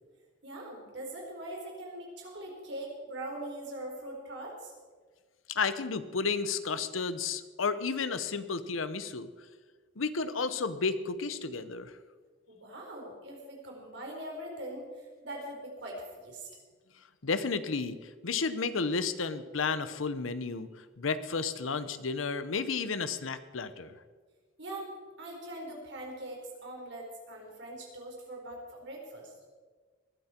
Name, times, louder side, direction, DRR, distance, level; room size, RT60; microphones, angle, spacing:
voice 1, 0.4-4.7 12.5-16.5 24.6-24.9 25.2-29.3, right 1 dB, 60° right, -1 dB, 4.4 m, -42 dB
voice 2, 5.5-9.3 10.0-11.9 17.2-20.7 21.0-24.0, left 4 dB, 85° left, 12 dB, 0.9 m, -32 dB
20.5 x 12.0 x 4.5 m, 1.5 s
head